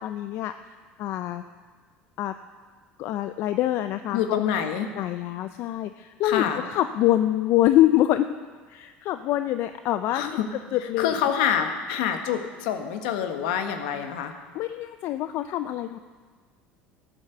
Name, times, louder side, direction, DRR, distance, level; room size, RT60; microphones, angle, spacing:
voice 1, 0.0-1.4 2.2-2.3 3.0-4.4 5.0-8.3 8.7-10.4 10.7-11.1 14.5-16.0, left 14 dB, 60° left, 10 dB, 0.5 m, -25 dB
voice 2, 4.1-4.9 6.2-6.6 10.1-10.5 11.0-14.3, left 8 dB, 80° left, 6 dB, 1.3 m, -26 dB
13.5 x 8.8 x 6.8 m, 1.5 s
supercardioid pair, 85°, 5 cm